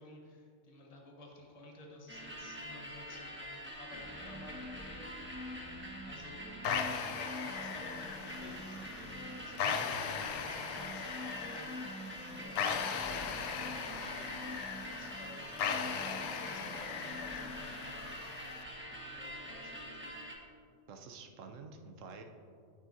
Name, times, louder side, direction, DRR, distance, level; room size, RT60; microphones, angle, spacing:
voice 1, 0.0-5.0 5.3-5.5 6.0-6.5 7.1-11.7 12.3-14.5 14.9-17.9 19.1-20.0, left 2 dB, 30° left, 0 dB, 1.1 m, -53 dB
sound 1, 2.1-20.3, equal, 10° right, 1.2 m, -44 dB
sound 2, 6.6-18.6, left 6 dB, 85° left, 1.0 m, -39 dB
voice 2, 20.9-22.2, right 4 dB, 80° right, 4 dB, 1.1 m, -49 dB
9.3 x 9.0 x 2.7 m, 2.3 s
omnidirectional pair, 1.3 m